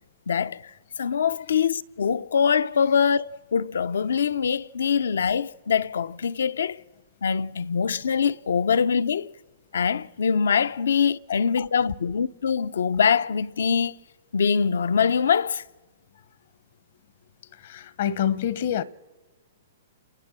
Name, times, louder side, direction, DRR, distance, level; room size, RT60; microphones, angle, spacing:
voice 1, 0.3-0.6 1.0-6.8 7.2-9.3 9.7-13.9 14.3-15.6, left 6 dB, 85° left, 0.7 m, -23 dB
voice 2, 17.6-18.8, left 10 dB, 60° left, 0.9 m, -26 dB
28.5 x 21.0 x 7.6 m
hypercardioid pair, 150°, 0 cm